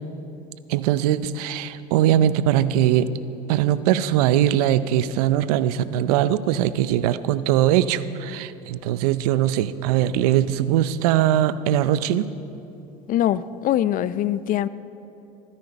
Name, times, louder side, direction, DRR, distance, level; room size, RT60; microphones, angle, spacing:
voice 1, 0.7-3.1 3.5-12.3, right 11 dB, 75° right, 15 dB, 0.6 m, -21 dB
voice 2, 13.1-14.7, left 12 dB, 45° left, 17 dB, 0.5 m, -22 dB
20.0 x 10.0 x 5.2 m, 2.8 s
hypercardioid pair, 90°, 20 cm